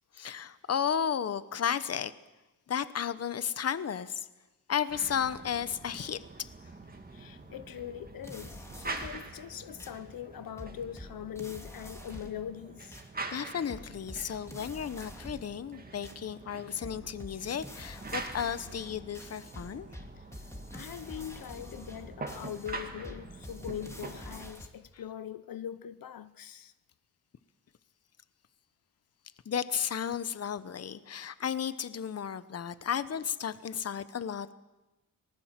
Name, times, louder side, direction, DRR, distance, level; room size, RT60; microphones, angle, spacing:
voice 1, 0.1-2.1 2.7-4.3 4.7-6.5 13.3-19.9 29.5-34.5, left 8 dB, 45° left, 1.0 m, -33 dB
sound 1, 4.9-24.5, right 3 dB, 25° right, 2.1 m, -45 dB
voice 2, 7.1-13.0 20.2-20.3 20.7-26.7 33.7-33.8, left 10 dB, 75° left, 0.9 m, -42 dB
sound 2, 8.0-9.4 9.8-10.0 10.6-12.5 12.9-13.1 13.7-15.6 16.0-16.2 16.8-24.7, left 1 dB, 10° left, 2.3 m, -47 dB
26.5 x 19.5 x 7.5 m
wide cardioid pair, 130°, 35 cm